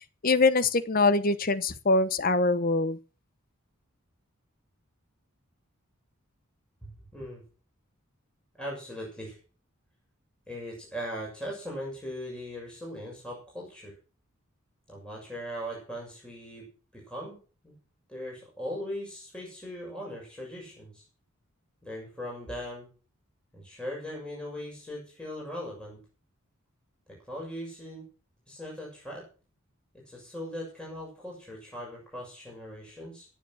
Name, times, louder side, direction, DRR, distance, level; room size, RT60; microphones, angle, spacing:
voice 1, 0.2-3.0, left 3 dB, 40° left, 1.0 m, -23 dB
voice 2, 6.8-7.4 8.6-9.4 10.5-13.9 14.9-16.6 16.9-17.4 17.6-17.7 18.1-21.0 21.8-22.9 23.5-26.0 27.1-28.0 28.5-29.2 30.1-33.3, equal, 5° left, 6.7 m, -39 dB
19.0 x 7.5 x 6.4 m
head